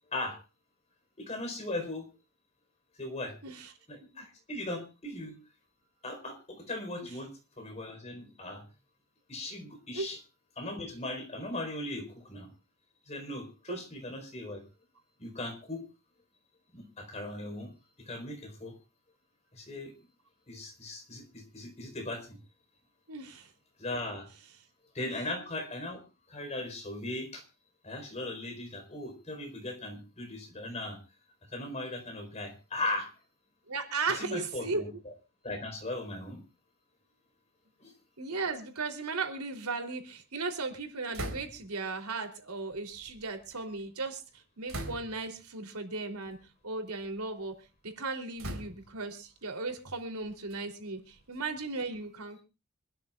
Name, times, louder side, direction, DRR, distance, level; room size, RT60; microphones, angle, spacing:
voice 1, 0.1-0.4 1.2-2.1 3.0-3.4 3.9-5.4 6.0-7.3 7.6-8.6 9.3-10.2 10.6-12.5 13.1-14.6 15.2-15.8 16.7-17.7 18.0-18.7 19.5-19.9 20.5-22.4 23.8-24.3 24.9-26.0 26.3-27.4 27.8-31.0 31.5-33.1 34.1-35.1 35.4-36.4 37.8-37.9, left 2 dB, 30° left, 5 dB, 4.4 m, -38 dB
voice 2, 23.1-23.5 33.7-34.8 38.2-46.4 46.6-47.5 47.8-52.4, right 3 dB, 85° right, 5 dB, 3.4 m, -36 dB
sound 1, 41.1-41.8 42.7-43.8 44.7-45.4 46.2-46.4 46.9-47.6 48.4-49.1 49.9-51.8, right 1 dB, 65° right, 3.9 m, -43 dB
26.0 x 13.0 x 2.4 m, 0.31 s
head